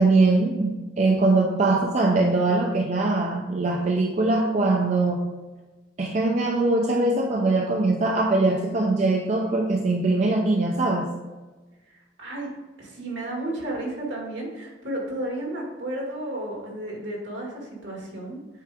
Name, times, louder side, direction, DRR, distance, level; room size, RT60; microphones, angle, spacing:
voice 1, 0.0-5.3 6.0-11.1, right 2 dB, 40° right, 1 dB, 0.5 m, -22 dB
voice 2, 11.9-12.5 12.8-18.4, right 1 dB, 70° right, -1 dB, 1.9 m, -33 dB
7.5 x 4.6 x 3.4 m, 1.2 s
head